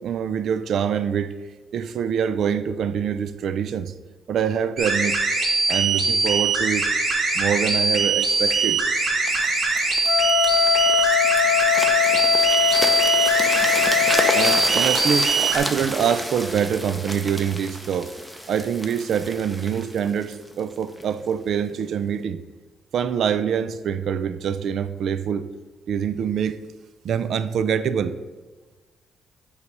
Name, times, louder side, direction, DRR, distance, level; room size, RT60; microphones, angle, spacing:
voice 1, 0.0-1.4 1.7-3.9 4.3-5.2 5.7-6.9 7.3-8.8 14.3-18.1 18.5-22.4 22.9-25.5 25.9-26.6 27.0-28.1, right 8 dB, 65° right, 13 dB, 0.4 m, -25 dB
sound 1, 4.8-15.6, right 4 dB, 50° right, 1.9 m, -22 dB
sound 2, 9.3-21.1 21.7-21.9, equal, 10° right, 0.8 m, -30 dB
Wind instrument woodwind instrument, 10.1-14.7, left 11 dB, 85° left, 0.4 m, -21 dB
8.2 x 3.2 x 5.2 m, 1.3 s
cardioid pair, 90°, 0 cm